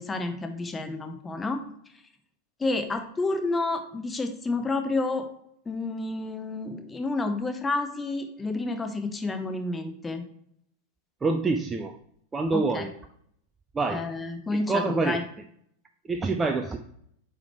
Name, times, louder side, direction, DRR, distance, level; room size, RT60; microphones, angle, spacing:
voice 1, 0.0-1.6 2.6-5.2 5.7-10.2 12.5-12.8 13.9-15.2, left 3 dB, 15° left, 7 dB, 0.7 m, -30 dB
voice 2, 11.2-12.0 12.3-12.9 13.7-14.1 14.5-15.2 16.0-16.8, right 3 dB, 15° right, 6 dB, 0.4 m, -26 dB
8.7 x 3.4 x 3.1 m, 0.69 s
figure-of-eight pair, 90°, 0 cm